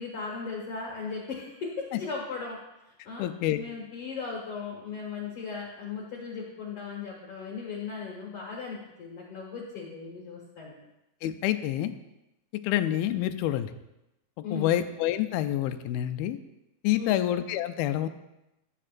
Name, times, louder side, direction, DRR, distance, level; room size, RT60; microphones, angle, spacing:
voice 1, 0.0-2.6 2.9-3.3 3.6-10.7 14.4-14.7 16.9-17.2, left 5 dB, 55° left, -2 dB, 1.8 m, -37 dB
voice 2, 3.2-3.6 11.2-11.9 12.6-13.7 14.5-16.4 16.8-18.1, left 12 dB, 85° left, 10 dB, 2.4 m, -27 dB
16.5 x 7.5 x 2.5 m, 0.92 s
omnidirectional pair, 4.2 m